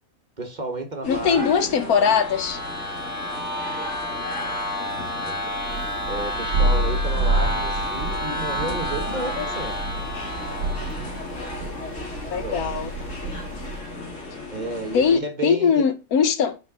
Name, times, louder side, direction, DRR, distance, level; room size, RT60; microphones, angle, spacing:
voice 1, 0.4-2.4 4.4-5.0 5.2-5.4 6.1-9.8 12.2-12.6 14.5-15.8, right 1 dB, 30° right, 1.3 m, -32 dB
sound 1, 1.0-15.2, left 3 dB, 55° left, 2.3 m, -36 dB
voice 2, 1.1-2.6 12.3-12.9 14.9-16.6, left 6 dB, 90° left, 1.5 m, -21 dB
sound 2, 1.7-11.4, left 1 dB, 30° left, 2.0 m, -31 dB
Thunder, 5.5-14.0, right 2 dB, 60° right, 1.2 m, -28 dB
6.3 x 4.5 x 6.1 m
omnidirectional pair, 1.5 m